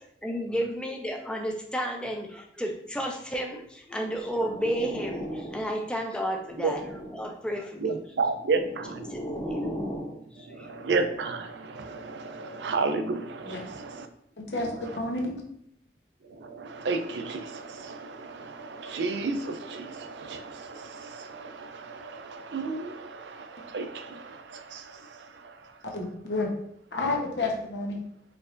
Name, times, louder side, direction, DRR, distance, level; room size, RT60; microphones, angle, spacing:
voice 1, 0.2-8.0 8.9-9.7 9.9-10.0 10.3-10.7, equal, 5° left, 2 dB, 0.4 m, -32 dB
sound 1, 4.0-5.8 6.3-7.4 8.3-10.2, equal, 20° left, 0.8 m, -37 dB
voice 2, 7.8-9.0 10.5-14.0 16.4-25.5, right 4 dB, 85° right, 8 dB, 0.4 m, -32 dB
voice 3, 14.4-15.3 25.9-26.5 26.9-28.0, left 2 dB, 85° left, 0 dB, 0.9 m, -30 dB
4.5 x 3.2 x 2.5 m, 0.72 s
head